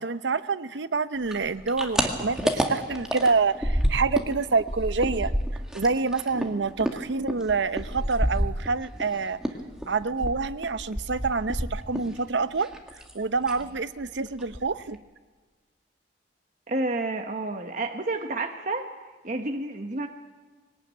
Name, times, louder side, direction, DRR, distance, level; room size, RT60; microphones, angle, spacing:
voice 1, 0.0-5.3 5.7-9.4 9.9-12.7 13.1-15.0, right 4 dB, 85° right, 14 dB, 0.7 m, -27 dB
sound 1, 1.3-4.3 4.6-9.1 9.4-12.2 12.4-13.1 13.4-13.7 14.0-14.1 14.4-14.9, equal, 5° right, 2.0 m, -29 dB
voice 2, 16.7-18.9 19.2-20.1, right 2 dB, 45° right, 4 dB, 1.2 m, -30 dB
22.0 x 18.5 x 9.1 m, 1.4 s
head